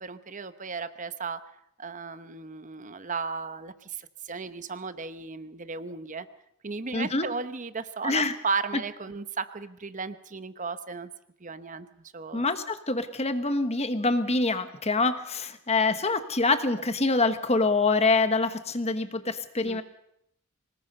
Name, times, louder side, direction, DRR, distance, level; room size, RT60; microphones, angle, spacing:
voice 1, 0.0-1.4 1.8-6.3 6.6-11.1 11.4-11.9 12.1-12.4 19.6-19.8, right 4 dB, 35° right, 12 dB, 0.9 m, -35 dB
voice 2, 6.9-7.3 8.0-8.4 12.3-19.8, left 3 dB, 30° left, 10 dB, 1.3 m, -25 dB
25.0 x 20.0 x 5.5 m, 0.75 s
head